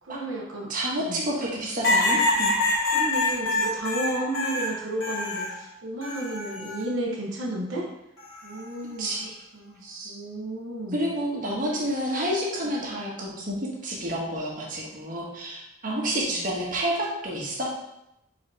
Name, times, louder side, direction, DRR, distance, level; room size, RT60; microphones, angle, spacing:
voice 1, 0.0-0.7 1.0-1.3 2.9-7.9 8.4-11.0 12.6-12.7 16.4-16.5, right 1 dB, 80° right, -3 dB, 1.1 m, -33 dB
voice 2, 0.7-2.5 9.0-9.3 9.8-10.1 10.9-13.6 13.8-17.7, right 1 dB, 45° right, -4 dB, 1.3 m, -29 dB
sound 1, 1.8-5.5 6.0-6.8 8.2-8.6, left 2 dB, 85° left, 1.4 m, -25 dB
5.0 x 4.0 x 4.8 m, 0.85 s
head